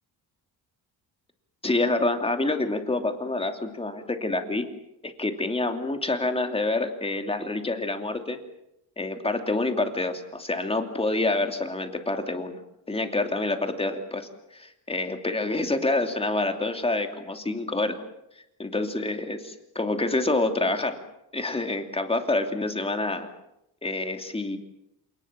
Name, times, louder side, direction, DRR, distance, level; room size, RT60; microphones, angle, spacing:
voice 1, 1.6-4.6 5.0-8.4 9.0-12.6 12.9-18.0 18.6-21.0 21.3-23.3 23.8-24.6, left 2 dB, 15° left, 5 dB, 2.8 m, -27 dB
27.5 x 19.5 x 7.5 m, 0.83 s
cardioid pair, 130°, 40 cm